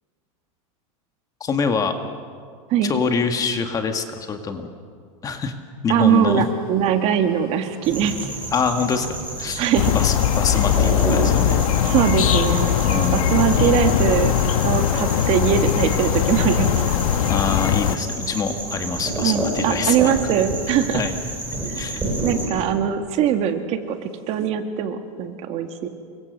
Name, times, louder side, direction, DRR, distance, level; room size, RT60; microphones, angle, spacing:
voice 1, 1.4-1.9 2.8-4.7 5.2-5.5 5.8-6.4 8.5-9.6 9.9-11.6 12.8-13.7 17.3-20.1 20.9-21.1 21.7-22.0, left 5 dB, 20° left, 6 dB, 1.7 m, -25 dB
voice 2, 5.9-8.3 9.6-10.0 11.8-12.7 12.9-14.3 14.6-17.0 19.2-21.0 21.7-21.8 22.2-25.9, right 9 dB, 35° right, 7 dB, 1.8 m, -21 dB
sound 1, 6.0-16.9, right 6 dB, 90° right, 5.6 m, -38 dB
sound 2, 7.8-22.4, right 2 dB, 10° right, 6.9 m, -29 dB
sound 3, 9.7-18.0, left 11 dB, 75° left, 1.3 m, -20 dB
28.5 x 24.0 x 6.7 m, 2.1 s
supercardioid pair, 155°, 18 cm